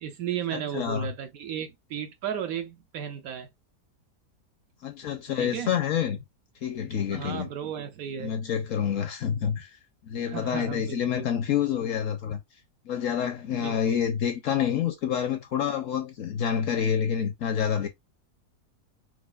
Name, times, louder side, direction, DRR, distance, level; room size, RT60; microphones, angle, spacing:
voice 1, 0.0-3.5 5.4-5.7 7.1-8.4 10.2-11.3 13.5-14.0, right 8 dB, 70° right, 0.9 m, -34 dB
voice 2, 0.5-1.1 4.8-6.2 6.6-7.5 8.2-9.7 10.0-12.4 12.9-17.9, left 8 dB, 65° left, 0.8 m, -28 dB
4.7 x 2.3 x 2.3 m
omnidirectional pair, 1.7 m